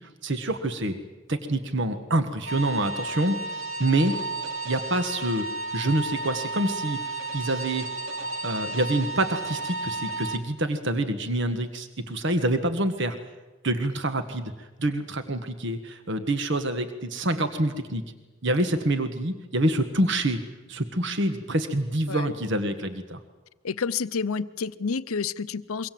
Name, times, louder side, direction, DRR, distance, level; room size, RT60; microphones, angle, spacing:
voice 1, 0.2-1.0 1.3-3.4 3.8-4.1 4.6-5.5 5.7-7.0 7.3-7.9 8.4-13.1 13.6-18.0 18.4-20.4 20.7-23.2, right 1 dB, 55° right, 8 dB, 1.6 m, -26 dB
Radio Frequency, 2.5-10.4, right 3 dB, 75° right, 3.3 m, -33 dB
voice 2, 23.6-25.9, left 5 dB, 90° left, 14 dB, 0.7 m, -29 dB
26.5 x 23.5 x 7.7 m, 1.2 s
head